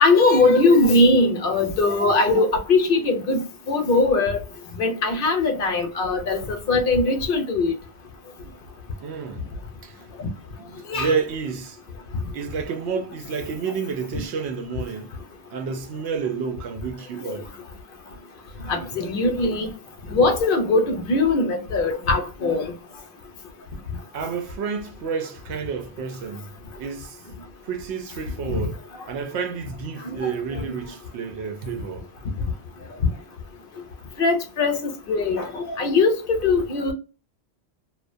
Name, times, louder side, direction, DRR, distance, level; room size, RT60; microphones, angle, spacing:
voice 1, 0.0-3.4 3.7-4.4 4.8-7.7 10.2-10.3 10.9-11.1 18.7-19.7 20.1-22.6 30.2-30.3 34.2-34.8 35.1-36.2 36.4-36.9, left 3 dB, 60° left, 0.8 m, -20 dB
voice 2, 9.0-9.4 9.8-10.0 10.6-11.8 12.3-15.1 15.5-17.5 24.1-26.5 26.8-27.2 27.6-32.1, right 6 dB, 85° right, 0.9 m, -30 dB
2.5 x 2.1 x 2.5 m
omnidirectional pair, 1.1 m